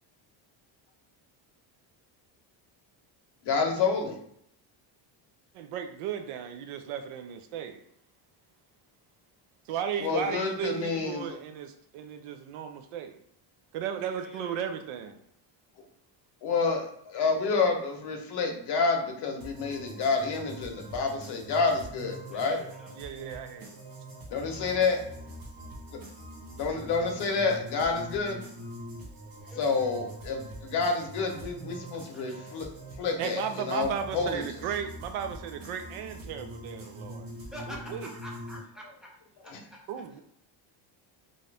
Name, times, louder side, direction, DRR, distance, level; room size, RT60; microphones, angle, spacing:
voice 1, 3.4-4.2 10.0-11.4 16.4-22.6 24.3-25.0 26.6-28.4 29.6-32.7 33.0-34.5 39.5-39.6, left 4 dB, 55° left, 0.7 m, -28 dB
voice 2, 5.5-7.8 9.7-13.2 13.7-15.2 23.0-23.8 33.2-37.3 37.7-38.1 39.9-40.2, right 8 dB, 75° right, 0.6 m, -35 dB
voice 3, 14.2-14.6 22.3-22.9 29.4-29.8 31.9-32.5 37.5-39.1 39.4-39.7, left 1 dB, ahead, 0.4 m, -46 dB
sound 1, 19.4-38.6, right 1 dB, 45° right, 0.8 m, -44 dB
2.7 x 2.4 x 3.2 m
cardioid pair, 150°, 50 cm